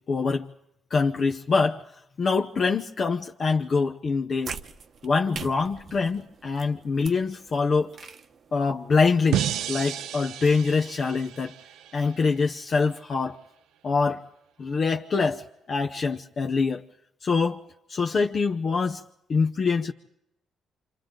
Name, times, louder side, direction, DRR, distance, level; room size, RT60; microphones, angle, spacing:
voice 1, 0.1-0.5 0.9-1.8 2.2-4.5 5.0-7.9 8.5-11.5 11.9-13.4 13.8-14.2 14.6-16.8 17.2-17.6 17.9-19.0 19.3-19.9, left 4 dB, 45° left, 0.8 m, -24 dB
sound 1, 4.4-10.3, right 6 dB, 55° right, 1.0 m, -44 dB
sound 2, 9.3-12.4, right 11 dB, 90° right, 0.7 m, -32 dB
28.5 x 26.5 x 3.8 m
cardioid pair, 90°, 0 cm